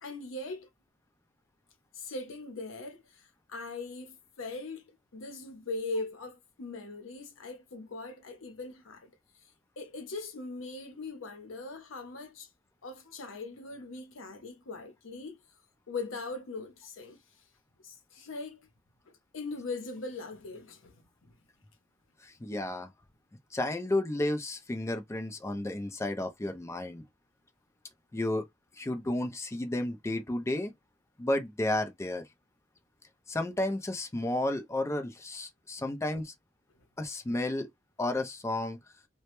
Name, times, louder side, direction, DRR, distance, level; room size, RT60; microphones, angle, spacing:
voice 1, 0.0-0.7 1.9-9.2 9.8-12.5 12.8-15.4 15.9-17.2 17.8-18.7 19.1-21.3 35.8-35.9, left 3 dB, 90° left, 0.7 m, -40 dB
voice 2, 22.2-22.9 23.5-27.0 28.1-28.5 28.7-30.7 31.2-32.2 33.3-36.3 37.0-37.7 38.0-38.8, left 1 dB, 15° left, 0.4 m, -32 dB
2.1 x 2.0 x 2.9 m
head